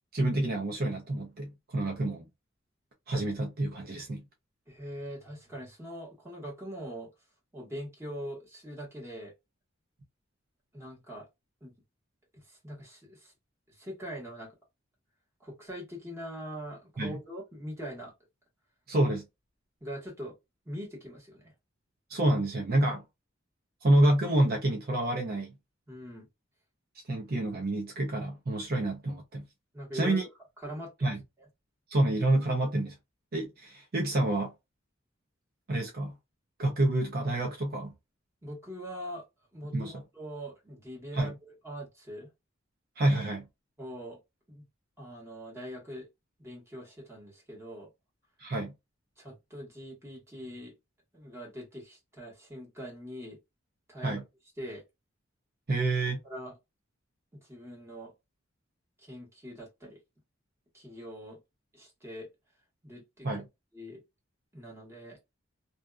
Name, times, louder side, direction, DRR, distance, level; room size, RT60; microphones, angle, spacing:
voice 1, 0.1-2.3 3.1-4.2 17.0-17.2 18.9-19.3 22.1-23.0 23.8-25.5 27.1-29.5 29.9-30.2 31.0-31.2 31.9-33.0 33.3-34.5 35.7-36.2 36.6-37.9 39.7-40.0 41.1-41.3 43.0-43.5 48.4-48.7 54.0-54.2 55.7-56.2 63.2-63.5, right 1 dB, 50° right, 0.6 m, -28 dB
voice 2, 4.7-7.1 7.5-9.3 10.7-11.3 11.6-11.7 12.3-13.3 13.7-14.5 15.4-18.1 19.8-20.3 20.6-21.5 25.9-26.3 29.7-30.3 30.6-31.1 38.4-39.2 39.5-42.3 43.8-44.2 44.5-44.6 45.0-46.1 46.4-47.9 49.2-50.7 51.1-53.4 53.9-54.2 54.6-54.8 56.2-56.6 57.4-58.1 59.0-60.0 60.7-61.4 61.7-62.3 62.8-63.3 63.7-64.0 64.5-65.2, equal, 15° right, 1.3 m, -42 dB
2.7 x 2.4 x 2.2 m
head